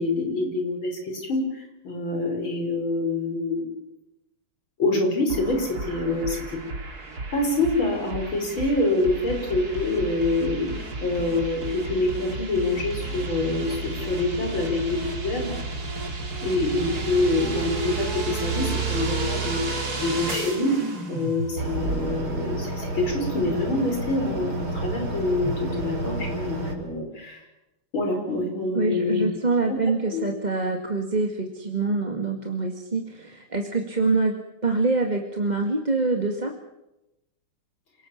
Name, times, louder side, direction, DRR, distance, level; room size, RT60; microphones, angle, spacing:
voice 1, 0.0-3.7 4.8-6.6 7.3-15.5 16.4-20.8 21.1-27.4 27.9-29.3 29.7-29.8 30.1-30.2, left 2 dB, 70° left, 3 dB, 6.4 m, -26 dB
sound 1, 5.3-22.2, right 3 dB, 45° right, 3.4 m, -32 dB
sound 2, 21.6-26.7, right 1 dB, 75° right, 4.8 m, -30 dB
voice 2, 28.7-34.3 34.6-36.6, right 3 dB, 20° right, 2 dB, 1.9 m, -25 dB
28.0 x 19.0 x 7.4 m, 0.92 s
omnidirectional pair, 2.3 m